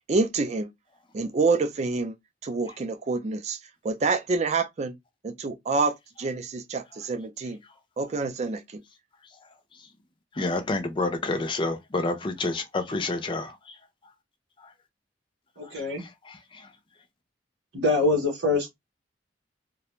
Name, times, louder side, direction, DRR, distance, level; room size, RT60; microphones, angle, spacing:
voice 1, 0.1-0.7 1.1-2.1 2.4-3.6 3.8-4.9 5.2-7.6 8.0-8.8, right 3 dB, 40° right, 0.4 m, -27 dB
voice 2, 10.4-13.5 16.3-16.4, left 2 dB, 25° left, 0.5 m, -28 dB
voice 3, 15.6-16.0 17.7-18.7, left 3 dB, 85° right, 0.9 m, -24 dB
2.4 x 2.1 x 2.9 m
head